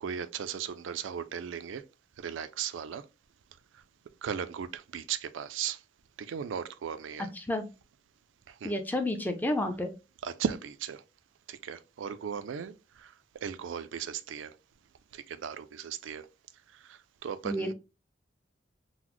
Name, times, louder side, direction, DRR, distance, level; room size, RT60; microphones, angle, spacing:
voice 1, 0.0-1.8 2.2-3.0 4.2-5.8 6.3-7.3 8.6-8.8 10.2-11.0 11.5-12.7 13.0-13.1 13.4-14.5 15.1-16.3 16.9-17.7, right 7 dB, 85° right, 0.4 m, -36 dB
voice 2, 7.4-7.7 8.6-9.9 17.4-17.7, left 1 dB, 10° left, 0.4 m, -30 dB
3.8 x 2.1 x 3.0 m
head